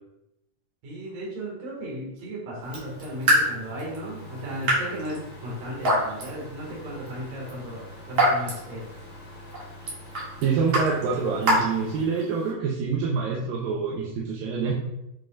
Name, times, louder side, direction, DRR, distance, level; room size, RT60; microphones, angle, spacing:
voice 1, 0.8-8.8, equal, 70° right, -5 dB, 3.3 m, -35 dB
Raindrop / Drip, 2.6-12.5, equal, 40° right, 2.4 m, -28 dB
sound 1, 2.7-12.0, left 1 dB, 45° left, 2.4 m, -44 dB
voice 2, 10.4-14.7, right 5 dB, 85° right, -3 dB, 2.5 m, -26 dB
7.7 x 5.5 x 2.4 m, 0.86 s
omnidirectional pair, 4.0 m